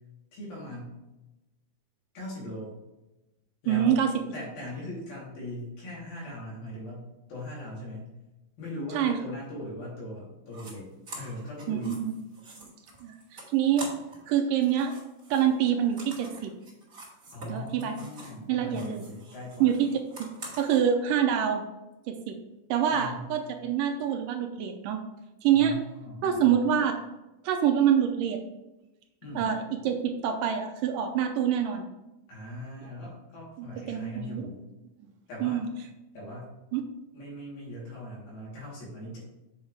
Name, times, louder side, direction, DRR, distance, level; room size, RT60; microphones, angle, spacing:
voice 1, 0.3-0.9 2.1-2.8 3.6-4.0 4.3-8.1 8.6-10.9 11.1-12.0 17.3-19.7 22.9-23.3 25.5-26.6 29.2-29.5 32.3-34.6 35.3-35.6 36.1-36.5 37.1-39.2, left 1 dB, 75° left, -6 dB, 4.9 m, -40 dB
voice 2, 3.7-4.1 8.9-9.2 11.7-12.1 13.0-13.1 13.5-13.9 14.3-14.9 15.3-16.5 17.5-18.0 18.5-19.0 19.6-19.9 20.6-21.6 22.1-22.4 22.7-25.0 25.4-25.8 26.2-26.9 27.4-28.4 29.4-31.9 32.8-32.9 33.6-34.5 35.4-35.7 36.7-36.8, right 9 dB, 80° right, 6 dB, 2.2 m, -26 dB
sound 1, 10.5-10.7 11.1-14.3 14.6-18.4 18.7-20.8, right 2 dB, 25° right, 2.4 m, -46 dB
8.1 x 6.3 x 3.3 m, 1.0 s
omnidirectional pair, 4.1 m